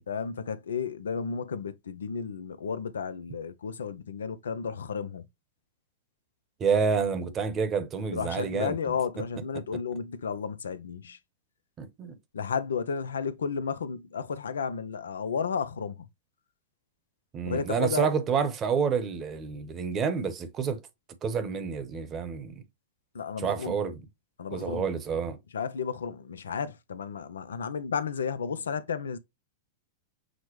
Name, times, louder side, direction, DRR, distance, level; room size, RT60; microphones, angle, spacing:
voice 1, 0.1-5.3 8.1-11.2 12.3-16.1 17.4-18.1 23.1-23.8 24.4-24.9 25.5-29.2, left 6 dB, 85° left, 0.5 m, -33 dB
voice 2, 6.6-8.7 11.8-12.1 17.3-20.8 21.2-22.6 23.4-24.0 24.5-25.4, right 6 dB, 30° right, 0.9 m, -28 dB
6.2 x 2.1 x 3.0 m
hypercardioid pair, 105°, 0 cm